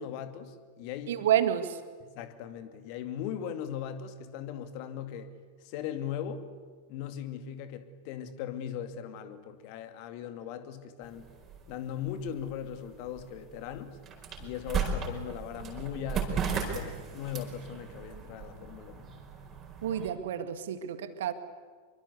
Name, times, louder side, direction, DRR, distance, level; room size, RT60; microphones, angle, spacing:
voice 1, 0.0-1.2 2.0-5.3 5.6-6.5 6.9-11.3 11.7-14.0 14.4-19.2, left 9 dB, 45° left, 9 dB, 2.3 m, -39 dB
voice 2, 1.1-1.8 19.8-21.3, right 10 dB, 60° right, 10 dB, 2.0 m, -29 dB
sound 1, 11.0-20.1, right 6 dB, 25° right, 4.8 m, -37 dB
26.5 x 23.5 x 8.2 m, 1.5 s
figure-of-eight pair, 90°, 0 cm